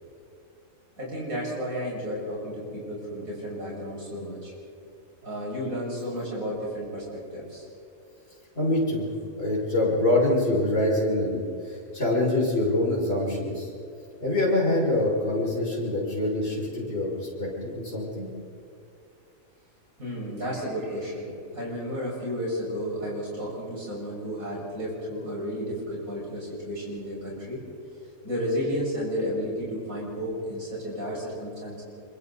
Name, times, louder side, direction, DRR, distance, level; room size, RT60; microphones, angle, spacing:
voice 1, 1.0-4.5 5.2-7.6 20.0-27.6 28.2-31.8, equal, 70° right, -5 dB, 7.0 m, -32 dB
voice 2, 8.6-9.1 9.4-11.4 11.6-13.7 14.2-18.3, left 1 dB, 45° left, -5 dB, 6.4 m, -25 dB
26.0 x 24.5 x 4.2 m, 2.5 s
omnidirectional pair, 1.5 m